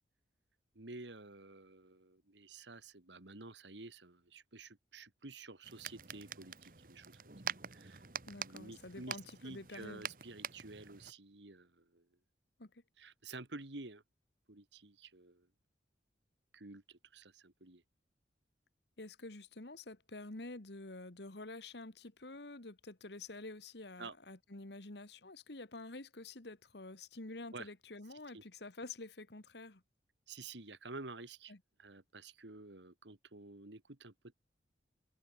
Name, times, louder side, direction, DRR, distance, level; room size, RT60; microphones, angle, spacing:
voice 1, 0.7-7.3 7.7-8.0 8.4-12.1 13.0-14.0 14.5-15.5 16.5-17.8 24.0-24.1 27.5-27.7 28.3-28.4 30.3-31.5 31.8-34.3, right 3 dB, 80° right, 2.2 m, -51 dB
sound 1, 5.6-11.1, right 7 dB, 50° right, 1.7 m, -46 dB
voice 2, 8.3-10.0 12.6-12.8 19.0-29.8 31.5-31.6, left 2 dB, 70° left, 1.8 m, -48 dB
head